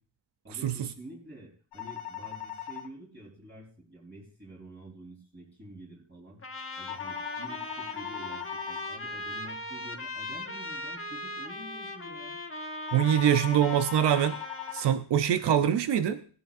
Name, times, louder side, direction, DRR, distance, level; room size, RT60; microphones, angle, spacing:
voice 1, 0.4-6.4 6.8-12.4, right 1 dB, 30° right, -5 dB, 4.1 m, -48 dB
sound 1, 1.7-2.9 6.9-8.9 12.9-14.9, left 10 dB, 85° left, 1.1 m, -39 dB
Trumpet, 6.4-15.0, left 2 dB, 30° left, 1.4 m, -39 dB
voice 2, 12.9-14.4 14.7-16.2, right 10 dB, 85° right, 10 dB, 0.8 m, -24 dB
20.0 x 11.0 x 2.6 m, 0.42 s
wide cardioid pair, 130°, 40 cm